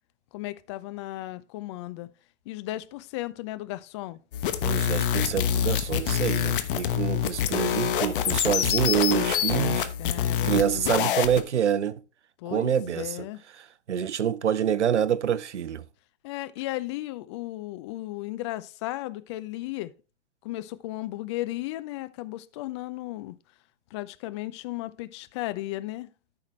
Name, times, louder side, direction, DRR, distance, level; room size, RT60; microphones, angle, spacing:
voice 1, 0.3-2.1 2.5-4.2 10.0-11.2 12.4-13.4 16.2-19.9 20.4-23.4 23.9-26.1, left 17 dB, 25° left, 0.4 m, -35 dB
sound 1, 4.3-11.4, left 9 dB, 50° left, 1.1 m, -26 dB
voice 2, 4.6-9.9 10.4-12.0 12.5-13.3 13.9-15.8, right 9 dB, 85° right, 0.7 m, -26 dB
13.5 x 5.8 x 3.2 m
hypercardioid pair, 125°, 34 cm